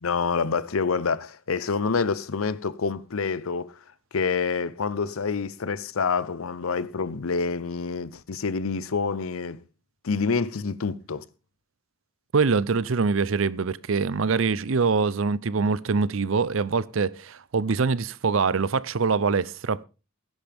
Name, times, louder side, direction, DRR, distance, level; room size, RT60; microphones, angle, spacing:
voice 1, 0.0-3.8 4.1-9.6 10.0-11.3, left 5 dB, 90° left, 0.7 m, -27 dB
voice 2, 12.3-19.8, right 4 dB, 70° right, 0.6 m, -24 dB
17.0 x 10.5 x 3.5 m
head